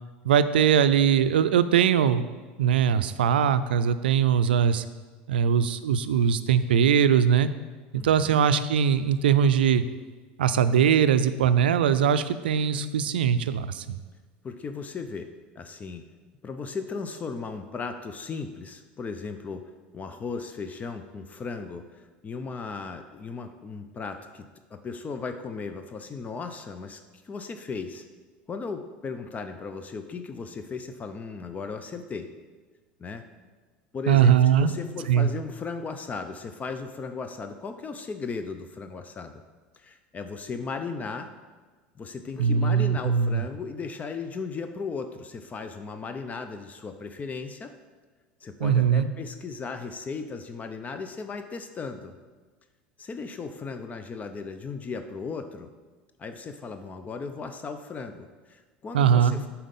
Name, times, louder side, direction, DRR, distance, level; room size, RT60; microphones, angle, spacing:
voice 1, 0.2-2.2 2.6-4.8 5.3-7.5 7.9-9.8 10.4-14.0 34.1-34.7 35.1-35.3 42.4-43.4 48.6-49.1 58.9-59.4, right 8 dB, 90° right, 13 dB, 0.4 m, -21 dB
voice 2, 7.9-8.5 14.4-16.0 16.4-28.0 28.5-32.3 33.0-33.2 33.9-39.4 39.7-41.3 42.0-47.7 48.4-52.1 53.0-55.7 56.2-59.5, left 4 dB, 30° left, 8 dB, 0.5 m, -36 dB
7.4 x 4.5 x 5.3 m, 1.3 s
hypercardioid pair, 90°, 5 cm